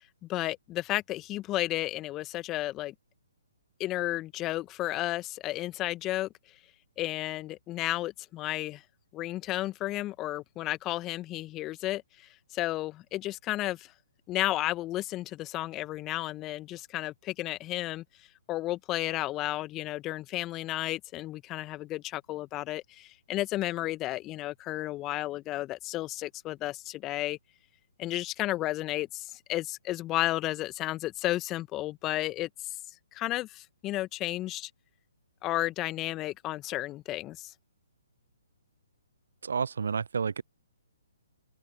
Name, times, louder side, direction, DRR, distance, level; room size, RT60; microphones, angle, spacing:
voice 1, 0.2-2.9 3.8-6.3 7.0-8.8 9.1-13.9 14.3-18.0 18.5-27.4 28.0-32.8 33.1-34.7 35.4-37.5, left 16 dB, 20° left, 1.8 m, -33 dB
voice 2, 39.4-40.4, right 6 dB, 65° right, 0.5 m, -30 dB
figure-of-eight pair, 130°, 0 cm